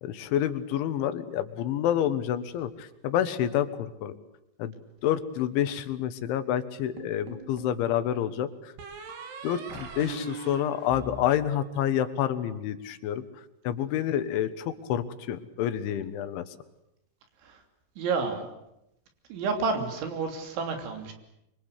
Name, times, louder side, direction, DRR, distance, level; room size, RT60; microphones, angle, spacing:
voice 1, 0.0-4.2 4.6-4.7 5.0-8.7 9.4-13.2 13.7-16.5, left 10 dB, 85° left, 11 dB, 3.8 m, -28 dB
sound 1, 7.0-7.8 8.8-12.1, right 4 dB, 65° right, 4.7 m, -41 dB
voice 2, 18.0-18.5 19.3-21.1, right 4 dB, 80° right, 5 dB, 5.5 m, -30 dB
25.5 x 24.5 x 8.3 m, 0.85 s
omnidirectional pair, 5.3 m